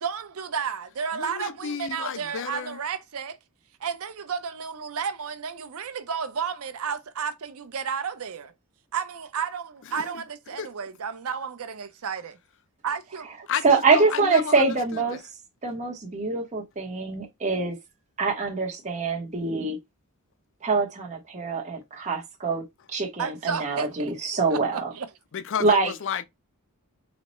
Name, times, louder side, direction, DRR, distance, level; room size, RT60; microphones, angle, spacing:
voice 1, 0.0-3.4 3.8-8.5 8.9-12.4 12.8-13.3 23.2-24.1 24.5-25.1, right 6 dB, 70° right, 0.6 m, -32 dB
voice 2, 1.1-2.8 9.9-10.2 10.6-10.7 13.5-15.2 25.3-26.2, left 7 dB, 60° left, 0.4 m, -32 dB
voice 3, 13.6-15.2 15.6-17.8 18.2-19.8 20.6-24.9 25.6-25.9, right 4 dB, 30° right, 0.9 m, -24 dB
4.1 x 2.1 x 3.0 m
head